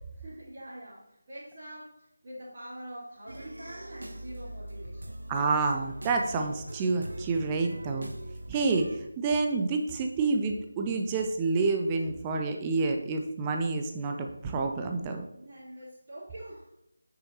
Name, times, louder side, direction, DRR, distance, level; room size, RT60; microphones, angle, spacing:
voice 1, 0.2-5.1 8.5-8.6 15.3-16.7, right 1 dB, 35° right, -13 dB, 2.7 m, -45 dB
Don't Want to Lose You, 3.3-9.0, right 1 dB, 60° right, 0.9 m, -42 dB
voice 2, 5.3-8.1 8.5-15.2, right 3 dB, 15° right, 4 dB, 0.5 m, -28 dB
8.5 x 6.3 x 2.8 m, 0.81 s
figure-of-eight pair, 160°, 0 cm